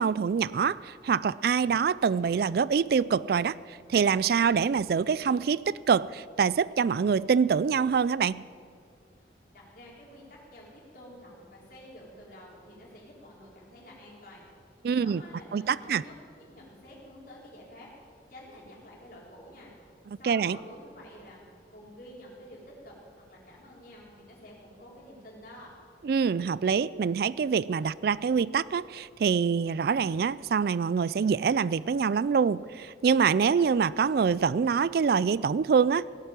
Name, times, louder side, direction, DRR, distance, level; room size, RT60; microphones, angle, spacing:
voice 1, 0.0-8.4 14.8-15.2 15.5-16.0 20.2-20.6 26.0-36.1, right 6 dB, 55° right, 19 dB, 0.3 m, -25 dB
voice 2, 9.5-14.5 14.9-19.7 20.2-23.0 23.3-25.7, left 1 dB, 50° left, -4 dB, 3.8 m, -49 dB
17.0 x 8.1 x 9.0 m, 2.3 s
head